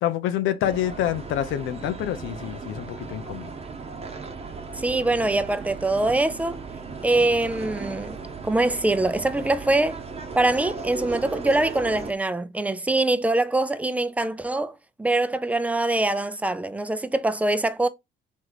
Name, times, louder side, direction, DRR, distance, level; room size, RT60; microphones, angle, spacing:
voice 1, 0.0-3.5, left 11 dB, 85° left, 0.5 m, -27 dB
sound 1, 0.6-12.1, right 4 dB, 30° right, 0.9 m, -36 dB
voice 2, 4.8-6.6 7.0-8.2 8.4-10.0 10.3-17.9, right 2 dB, 5° right, 0.4 m, -23 dB
3.3 x 3.0 x 3.9 m
cardioid pair, 90°, 20 cm